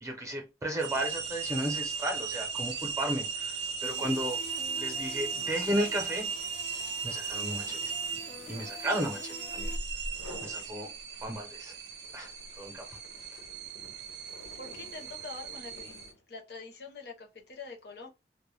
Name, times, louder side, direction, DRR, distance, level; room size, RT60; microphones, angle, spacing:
voice 1, 0.0-4.4 4.8-6.3 7.0-7.9 8.5-9.7 10.4-10.9 11.2-11.7 12.1-12.3 12.6-13.0, right 1 dB, 15° right, 0.6 m, -34 dB
sound 1, 0.6-0.8 1.1-9.6 10.0-10.6 11.1-16.2, left 1 dB, 85° left, 1.1 m, -54 dB
sound 2, 0.8-16.1, right 5 dB, 75° right, 0.5 m, -37 dB
sound 3, 3.8-9.8, left 3 dB, 35° left, 0.3 m, -48 dB
voice 2, 14.5-18.1, left 4 dB, 60° left, 0.7 m, -45 dB
2.2 x 2.0 x 3.1 m
head